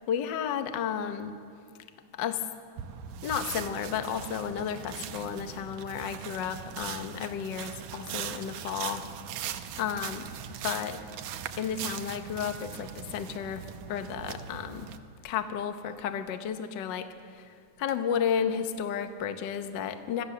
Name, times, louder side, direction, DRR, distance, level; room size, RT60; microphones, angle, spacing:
voice 1, 0.1-1.3 2.1-2.4 3.2-9.0 9.8-10.3 10.6-11.0 11.6-13.6 13.9-14.9 15.2-17.5 17.8-20.2, left 8 dB, 65° left, 7 dB, 1.1 m, -32 dB
sound 1, 2.8-15.0, right 9 dB, 80° right, 2.2 m, -40 dB
25.5 x 15.5 x 6.7 m, 2.3 s
omnidirectional pair, 3.4 m